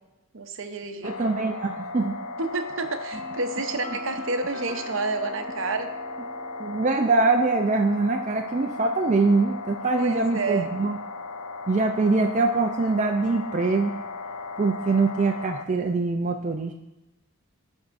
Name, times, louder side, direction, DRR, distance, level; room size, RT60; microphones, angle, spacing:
voice 1, 0.3-1.2 2.4-5.9 10.0-10.7, right 3 dB, 60° right, 7 dB, 0.7 m, -30 dB
sound 1, 1.0-15.7, left 3 dB, 85° left, 0.5 m, -36 dB
voice 2, 1.0-2.1 6.6-11.0 11.7-14.0 14.6-16.7, right 3 dB, 35° right, 2 dB, 0.4 m, -23 dB
sound 2, 3.1-10.8, left 2 dB, 30° left, 1.6 m, -46 dB
14.0 x 5.3 x 2.5 m, 1.0 s
head